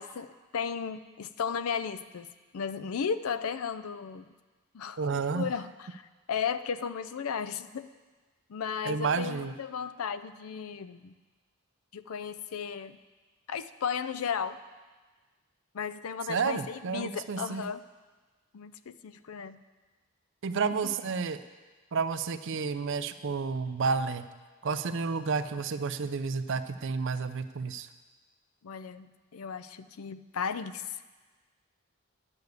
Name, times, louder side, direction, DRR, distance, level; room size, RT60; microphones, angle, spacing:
voice 1, 0.0-2.3 2.5-4.3 4.7-6.0 6.3-7.9 8.5-11.1 11.9-13.0 13.5-14.6 15.7-17.8 18.5-19.6 20.8-20.9 28.6-31.0, left 6 dB, 75° left, 13 dB, 0.5 m, -35 dB
voice 2, 5.0-5.5 8.8-9.6 16.3-17.6 20.4-21.4 21.9-24.3 24.6-27.9, right 5 dB, 55° right, 11 dB, 0.5 m, -31 dB
9.7 x 6.8 x 8.0 m, 1.3 s
head